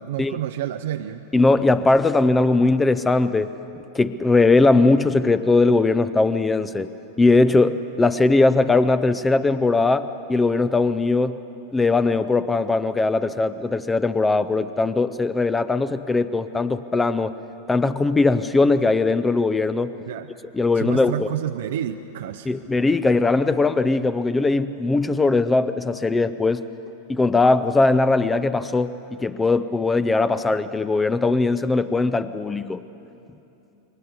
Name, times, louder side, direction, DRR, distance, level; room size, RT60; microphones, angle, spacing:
voice 1, 0.0-1.2 20.1-20.3 20.8-22.5, right 11 dB, 55° right, 8 dB, 0.6 m, -29 dB
voice 2, 1.3-3.5 3.9-6.9 7.2-11.4 11.7-17.3 17.7-19.9 20.5-21.3 22.5-26.6 27.1-32.8, left 3 dB, 10° left, 13 dB, 0.6 m, -20 dB
28.0 x 23.0 x 6.9 m, 2.9 s
figure-of-eight pair, 90°, 0 cm